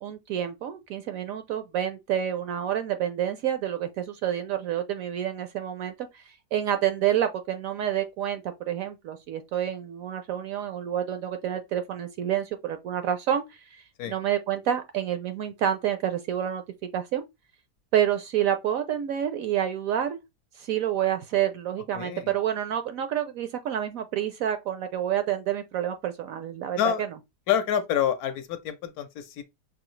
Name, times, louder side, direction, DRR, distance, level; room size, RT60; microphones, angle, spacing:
voice 1, 0.0-16.6 16.9-17.2 17.9-20.2 20.6-26.8, right 10 dB, 70° right, 0.8 m, -28 dB
voice 2, 21.9-22.3 26.8-27.1 27.5-29.4, left 9 dB, 70° left, 1.0 m, -27 dB
6.1 x 2.6 x 3.1 m
omnidirectional pair, 1.8 m